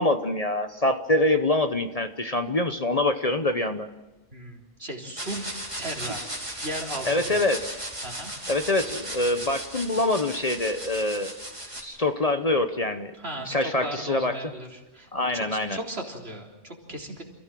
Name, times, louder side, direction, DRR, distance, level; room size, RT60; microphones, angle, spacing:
voice 1, 0.0-3.9 7.0-7.7 8.5-11.4 11.8-13.1 13.5-14.4 15.1-15.8, left 2 dB, 35° left, 8 dB, 1.1 m, -25 dB
voice 2, 4.3-5.4 5.8-6.3 6.6-7.5 8.0-8.3 13.2-17.2, right 1 dB, 60° right, 0 dB, 3.9 m, -36 dB
sound 1, 5.2-11.8, right 1 dB, 25° right, 4.8 m, -36 dB
29.0 x 16.0 x 7.7 m, 1.1 s
omnidirectional pair, 1.2 m